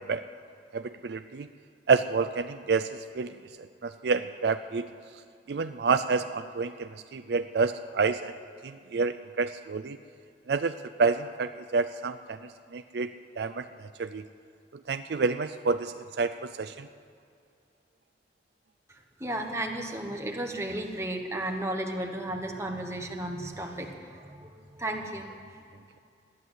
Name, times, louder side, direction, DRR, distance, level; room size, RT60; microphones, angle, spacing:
voice 1, 0.7-1.5 1.9-2.9 3.1-3.4 3.8-4.9 5.5-8.3 8.6-10.0 10.5-10.7 11.0-12.4 12.7-13.1 13.4-14.2 14.9-16.9, right 4 dB, 60° right, 10 dB, 0.4 m, -28 dB
voice 2, 18.9-25.5, right 1 dB, 15° right, 2 dB, 1.2 m, -34 dB
14.0 x 11.0 x 8.1 m, 2.4 s
head